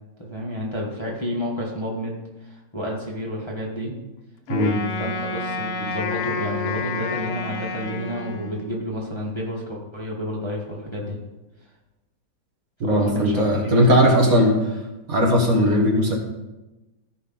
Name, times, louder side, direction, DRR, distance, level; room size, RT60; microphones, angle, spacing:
voice 1, 0.2-3.9 5.0-11.2 12.8-14.1, equal, 15° left, -2 dB, 1.2 m, -30 dB
Wind instrument woodwind instrument, 4.5-8.9, left 4 dB, 60° left, 1.1 m, -29 dB
voice 2, 12.8-14.8 15.1-16.2, equal, 50° right, 0 dB, 1.8 m, -18 dB
14.5 x 5.2 x 4.0 m, 1.0 s
omnidirectional pair, 1.9 m